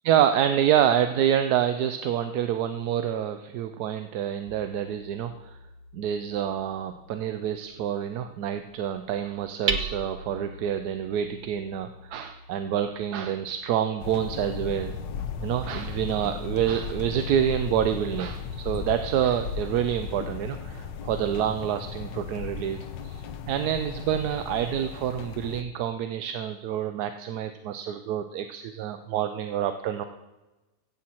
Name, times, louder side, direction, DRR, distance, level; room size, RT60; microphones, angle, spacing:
voice 1, 0.0-5.6 5.9-15.0 15.4-30.0, right 9 dB, 70° right, 9 dB, 1.1 m, -27 dB
Hammer, 4.5-16.2, right 4 dB, 45° right, 0.8 m, -40 dB
sound 1, 14.0-25.6, left 6 dB, 85° left, 1.5 m, -36 dB
16.0 x 7.7 x 4.3 m, 1.1 s
omnidirectional pair, 1.9 m